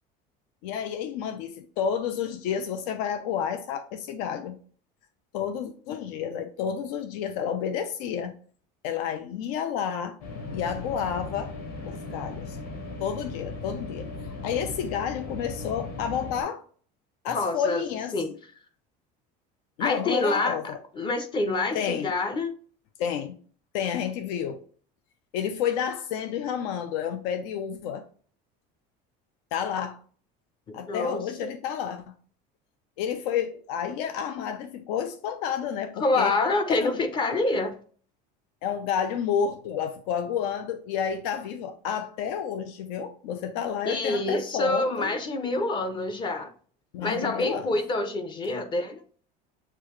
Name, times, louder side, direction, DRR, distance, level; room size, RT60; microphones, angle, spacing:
voice 1, 0.6-4.6 5.3-8.4 8.8-10.2 10.5-11.5 11.8-12.6 13.0-14.1 14.4-16.6 17.2-18.2 19.8-20.8 21.7-22.1 23.0-23.4 23.7-24.6 25.3-28.1 29.5-30.0 30.7-32.1 33.0-36.3 36.7-36.9 38.6-45.1 46.9-47.8, left 8 dB, 85° left, 0.7 m, -30 dB
sound 1, 10.2-16.4, left 3 dB, 45° left, 1.3 m, -37 dB
voice 2, 17.3-17.8 18.1-18.3 19.8-20.6 21.0-22.5 30.7-31.5 36.0-37.7 43.8-46.5 47.0-49.0, left 2 dB, 25° left, 0.5 m, -27 dB
6.7 x 2.4 x 3.1 m
cardioid pair, 160°, 21 cm